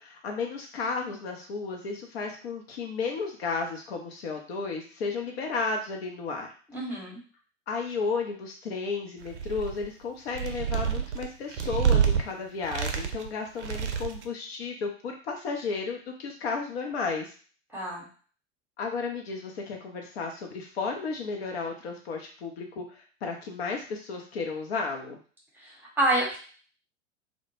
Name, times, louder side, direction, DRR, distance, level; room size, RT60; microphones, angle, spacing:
voice 1, 0.0-6.5 7.7-17.3 18.8-25.2, left 4 dB, 55° left, 2 dB, 0.6 m, -33 dB
voice 2, 6.7-7.2 17.7-18.0 25.6-26.4, right 1 dB, 5° right, -5 dB, 0.9 m, -28 dB
sound 1, 9.2-9.9 10.3-12.2 12.6-13.3 13.6-14.3, right 7 dB, 70° right, 0.5 m, -27 dB
2.1 x 2.0 x 3.1 m, 0.41 s
figure-of-eight pair, 85°, 36 cm